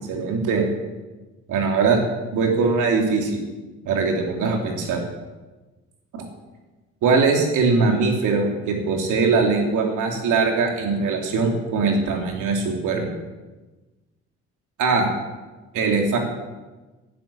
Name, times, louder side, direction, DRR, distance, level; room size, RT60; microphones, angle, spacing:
voice 1, 0.1-0.6 1.5-2.0 2.3-3.4 3.8-5.0 6.1-6.3 7.0-13.0 14.8-15.1 15.7-16.2, right 4 dB, 80° right, 2 dB, 3.2 m, -21 dB
11.0 x 10.0 x 8.4 m, 1.2 s
cardioid pair, 90°, 30 cm